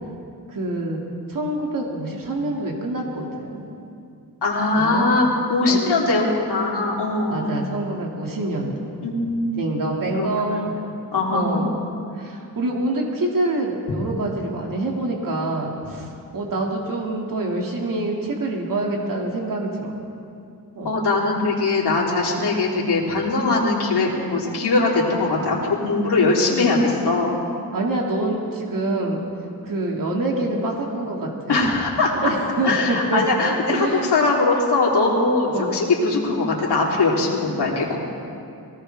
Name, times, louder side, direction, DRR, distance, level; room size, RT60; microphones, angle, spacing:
voice 1, 0.5-1.0 1.3-3.6 4.7-5.2 5.7-6.2 7.3-8.9 9.6-10.8 11.3-11.8 12.1-19.9 20.8-21.1 22.4-22.5 27.7-29.2 29.6-31.7 32.2-33.2 33.7-34.1 35.5-35.7, right 2 dB, 55° right, -1 dB, 2.2 m, -26 dB
voice 2, 4.4-7.5 9.0-9.8 10.1-10.6 11.1-11.6 20.8-27.3 31.5-32.1 32.6-38.0, left 3 dB, 80° left, -4 dB, 3.2 m, -21 dB
23.0 x 17.5 x 3.4 m, 2.5 s
wide cardioid pair, 140°, 39 cm